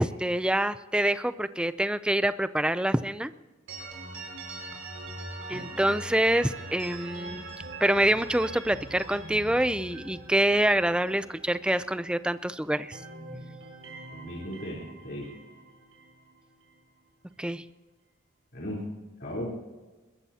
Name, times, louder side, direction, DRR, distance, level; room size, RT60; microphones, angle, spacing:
voice 1, 0.0-3.3 5.5-7.5 7.8-13.0 17.4-17.6, right 1 dB, 5° right, 13 dB, 0.4 m, -26 dB
sound 1, 3.7-12.4 12.7-16.8, right 2 dB, 65° right, 5.7 m, -43 dB
voice 2, 14.1-15.3 18.5-18.9 19.2-19.6, equal, 55° left, -4 dB, 3.7 m, -36 dB
22.0 x 20.5 x 2.8 m, 1.2 s
head